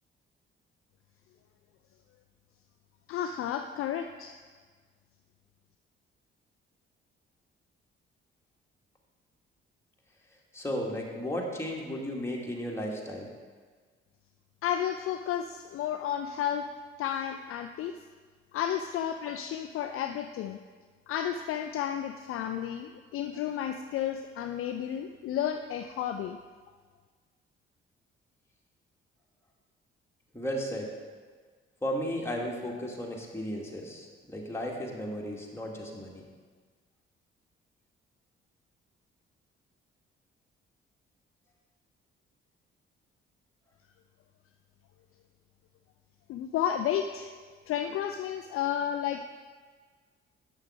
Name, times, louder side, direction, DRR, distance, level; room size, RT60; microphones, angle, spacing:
voice 1, 3.1-4.3 14.6-16.6 17.0-17.9 18.5-20.6 21.1-26.4 46.3-47.3 47.7-49.2, left 9 dB, 45° left, 7 dB, 0.5 m, -32 dB
voice 2, 10.5-13.3 30.3-30.9 31.8-36.2, equal, 10° left, -2 dB, 1.9 m, -34 dB
11.0 x 7.6 x 3.6 m, 1.5 s
figure-of-eight pair, 45°, 31 cm